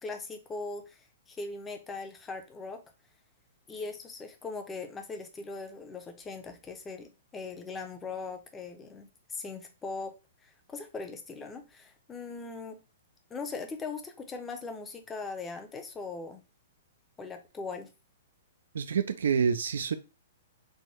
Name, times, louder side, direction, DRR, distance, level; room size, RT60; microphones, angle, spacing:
voice 1, 0.0-2.8 3.7-10.2 10.4-12.8 13.3-16.4 17.2-17.9, left 4 dB, 15° left, 0.7 m, -40 dB
voice 2, 18.7-19.9, right 6 dB, 60° right, 0.3 m, -27 dB
3.5 x 2.5 x 4.2 m
figure-of-eight pair, 110°, 0 cm